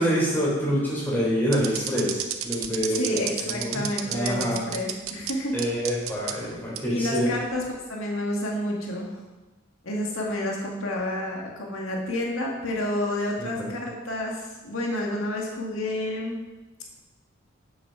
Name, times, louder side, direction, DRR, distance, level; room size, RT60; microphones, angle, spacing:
voice 1, 0.0-3.1 3.4-4.6 5.5-7.3 13.4-13.7, equal, 10° left, -6 dB, 3.6 m, -26 dB
sound 1, 1.5-5.3 5.6-6.3 6.8-6.9 7.5-7.8, right 11 dB, 90° right, 0.8 m, -30 dB
voice 2, 2.9-5.5 6.9-7.6 7.9-9.1 9.8-16.4, left 1 dB, 80° left, -1 dB, 1.7 m, -30 dB
8.3 x 7.4 x 5.9 m, 1.1 s
head